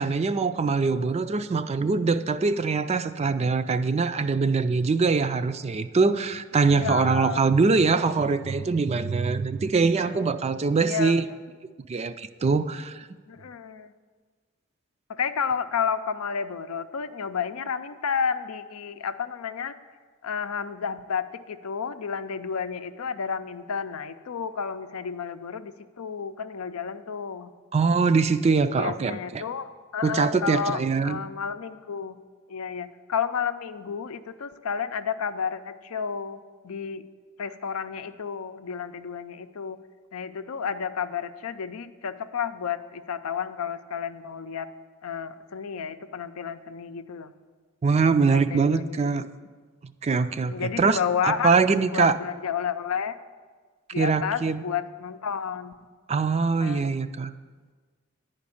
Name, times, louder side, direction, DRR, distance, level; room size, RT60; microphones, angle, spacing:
voice 1, 0.0-11.2 11.9-13.1 27.7-29.4 30.0-31.2 47.8-49.2 50.0-52.2 54.0-54.6 56.1-57.3, right 4 dB, 30° right, 11 dB, 0.4 m, -23 dB
voice 2, 6.8-7.4 10.1-10.2 10.8-11.2 13.3-13.9 15.1-19.7 20.2-27.5 28.7-32.2 32.5-37.0 37.4-39.8 40.1-44.7 45.0-47.3 48.2-49.0 50.5-51.5 51.9-53.1 53.9-55.7 56.6-57.0, left 6 dB, 90° left, 10 dB, 0.5 m, -31 dB
10.5 x 5.2 x 8.4 m, 1.5 s
head